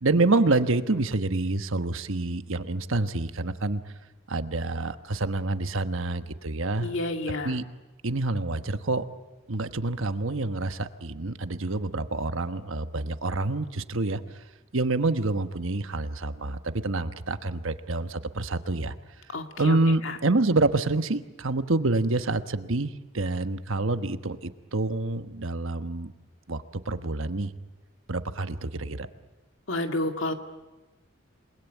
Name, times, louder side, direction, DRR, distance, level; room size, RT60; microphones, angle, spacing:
voice 1, 0.0-3.8 4.3-6.9 7.4-7.6 8.0-9.0 9.5-14.2 14.7-18.9 19.6-26.1 26.5-27.5 28.1-29.1, right 2 dB, 65° right, 10 dB, 1.2 m, -27 dB
voice 2, 6.8-7.6 19.3-20.2 29.7-30.3, left 2 dB, 60° left, 5 dB, 2.2 m, -30 dB
28.0 x 21.0 x 9.2 m, 1.1 s
head